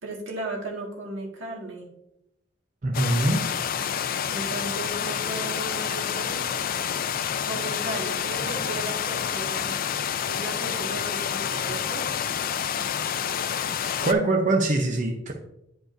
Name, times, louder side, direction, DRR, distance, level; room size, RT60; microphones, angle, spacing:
voice 1, 0.0-1.9 4.3-6.5 7.4-9.8 10.2-12.0, right 2 dB, 85° right, -1 dB, 1.7 m, -35 dB
voice 2, 2.8-3.4 14.0-15.3, right 2 dB, 40° right, 1 dB, 0.7 m, -23 dB
sound 1, 2.9-14.1, left 8 dB, 45° left, 0.3 m, -28 dB
10.5 x 4.9 x 2.5 m, 0.83 s
head